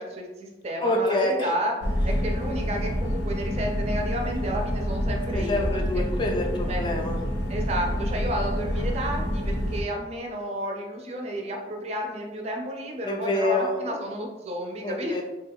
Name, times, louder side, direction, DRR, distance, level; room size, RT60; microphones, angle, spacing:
voice 1, 0.0-1.7 2.0-5.7 6.0-6.1 6.7-6.8 7.5-15.2, equal, 35° right, 2 dB, 0.4 m, -31 dB
voice 2, 0.8-1.5 5.3-7.2 13.0-13.7 14.8-15.2, left 1 dB, 25° left, 1 dB, 0.3 m, -26 dB
sound 1, 1.8-9.8, equal, 85° left, 0.5 m, -28 dB
2.8 x 2.3 x 3.4 m, 1.1 s
head